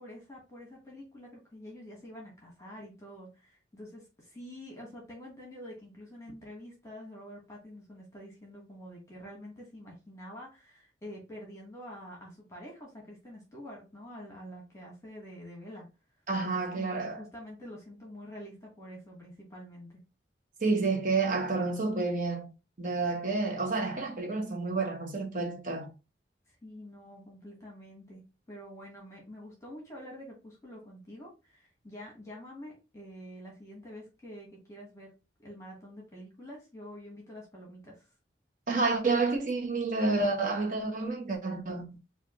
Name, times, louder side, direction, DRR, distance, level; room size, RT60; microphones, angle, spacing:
voice 1, 0.0-15.9 16.4-19.9 26.6-35.1 35.4-38.1, equal, 15° left, 1.4 m, -47 dB
voice 2, 16.3-17.2 20.6-22.5 22.8-25.9 38.7-41.9, right 3 dB, 45° right, 1.0 m, -29 dB
4.8 x 2.5 x 3.0 m
head